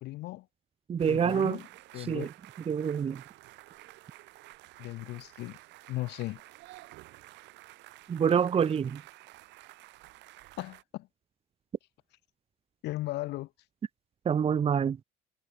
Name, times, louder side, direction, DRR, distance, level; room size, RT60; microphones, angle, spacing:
voice 1, 0.0-0.5 1.1-1.6 1.9-2.3 4.8-5.6 5.9-6.4 10.6-11.1 12.8-13.5, left 18 dB, 70° left, 0.8 m, -36 dB
voice 2, 0.9-1.6 2.0-2.3 2.7-3.2 8.1-9.0 14.2-15.0, right 7 dB, 30° right, 0.8 m, -26 dB
sound 1, 1.0-10.8, right 19 dB, 75° right, 2.3 m, -52 dB
supercardioid pair, 95°, 18 cm